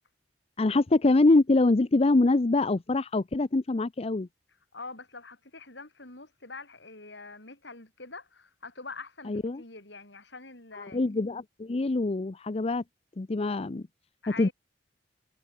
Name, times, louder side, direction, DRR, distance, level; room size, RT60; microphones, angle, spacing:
voice 1, 0.6-4.3 9.3-9.6 10.7-12.8 13.2-13.8 14.4-14.5, left 2 dB, 35° left, 0.6 m, -24 dB
voice 2, 4.7-11.1 14.2-14.5, left 3 dB, 75° left, 6.8 m, -45 dB
head